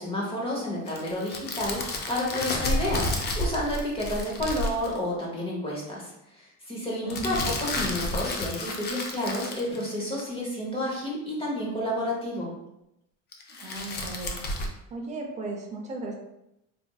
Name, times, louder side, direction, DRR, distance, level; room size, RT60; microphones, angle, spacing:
voice 1, 0.0-12.5, left 1 dB, 15° left, -3 dB, 0.9 m, -30 dB
sound 1, 0.9-5.0 7.1-10.3 13.3-14.7, left 2 dB, 30° left, 0.4 m, -31 dB
voice 2, 7.0-7.5 13.6-14.4 14.9-16.2, right 2 dB, 20° right, 1 dB, 0.5 m, -36 dB
4.2 x 2.5 x 2.3 m, 0.84 s
cardioid pair, 165°, 32 cm